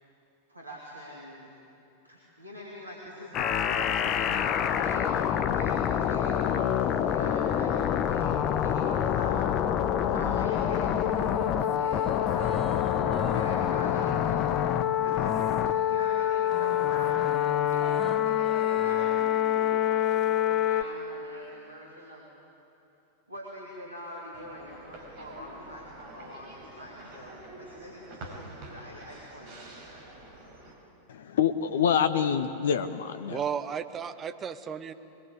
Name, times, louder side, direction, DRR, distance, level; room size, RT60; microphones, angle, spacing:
voice 1, 0.5-1.5 2.0-5.2 5.5-9.9 10.1-17.4 17.7-17.9 18.3-22.3 23.3-30.2, equal, 85° right, -3 dB, 3.0 m, -44 dB
sound 1, 3.3-20.8, left 10 dB, 35° left, 1.0 m, -26 dB
sound 2, 11.1-15.9 16.1-20.4 20.7-20.8, left 1 dB, 10° left, 2.2 m, -47 dB
sound 3, 24.3-30.7, right 2 dB, 45° right, 4.6 m, -47 dB
voice 2, 31.1-33.4, left 8 dB, 60° left, 10 dB, 0.8 m, -26 dB
voice 3, 33.3-34.9, right 7 dB, 25° right, 11 dB, 1.0 m, -34 dB
22.5 x 22.0 x 8.4 m, 2.7 s
figure-of-eight pair, 90°, 0 cm